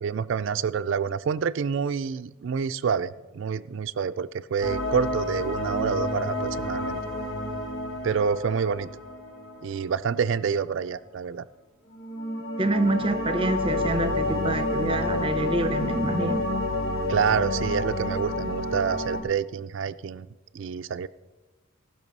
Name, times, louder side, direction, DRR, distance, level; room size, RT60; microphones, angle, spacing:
voice 1, 0.0-7.0 8.0-8.9 9.6-11.4 17.1-20.3 20.5-21.1, right 6 dB, 60° right, 0.3 m, -27 dB
sound 1, 4.6-9.9 11.9-19.2, left 1 dB, 80° left, 3.1 m, -29 dB
voice 2, 12.6-16.5, right 2 dB, 25° right, 0.7 m, -26 dB
18.0 x 6.1 x 5.3 m
head